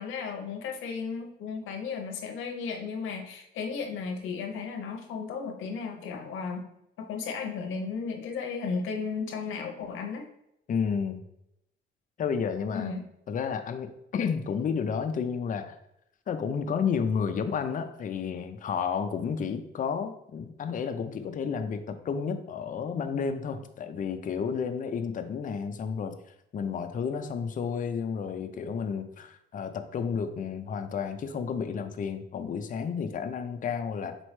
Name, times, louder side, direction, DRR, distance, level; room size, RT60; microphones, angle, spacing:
voice 1, 0.0-6.6 7.0-10.2 12.7-13.0, left 5 dB, 85° left, 3 dB, 0.7 m, -34 dB
voice 2, 10.7-11.2 12.2-12.9 13.3-15.8 16.3-26.2 26.5-34.2, left 6 dB, 40° left, 8 dB, 0.4 m, -31 dB
4.3 x 3.0 x 3.1 m, 0.81 s
cardioid pair, 90°, 20 cm